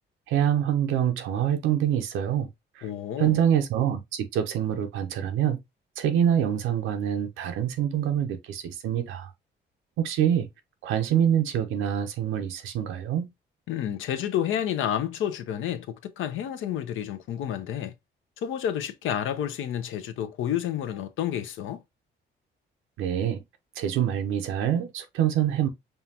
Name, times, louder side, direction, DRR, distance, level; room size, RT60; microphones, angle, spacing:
voice 1, 0.3-2.5 2.8-2.9 3.2-5.6 6.0-9.3 10.0-10.5 10.8-13.3 23.0-23.4 23.8-25.7, right 10 dB, 90° right, 0.8 m, -25 dB
voice 2, 2.8-3.4 13.7-15.9 16.2-17.9 18.4-21.8, left 10 dB, 80° left, 0.7 m, -30 dB
5.5 x 2.4 x 2.8 m
cardioid pair, 90°, 20 cm